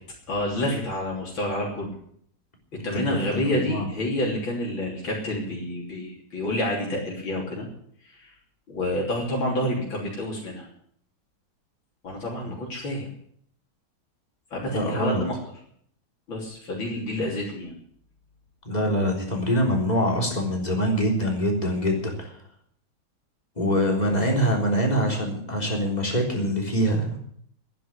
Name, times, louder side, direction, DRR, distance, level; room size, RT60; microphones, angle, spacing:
voice 1, 0.3-1.9 2.8-7.7 8.1-8.3 8.7-10.7 12.0-13.1 14.5-15.4 16.3-17.7 24.0-24.2, left 1 dB, 75° left, -2 dB, 4.0 m, -28 dB
voice 2, 2.9-3.9 12.4-12.5 14.7-15.2 18.7-22.4 23.6-27.2, equal, 20° left, 0 dB, 3.7 m, -24 dB
11.5 x 10.0 x 9.7 m, 0.64 s
omnidirectional pair, 2.2 m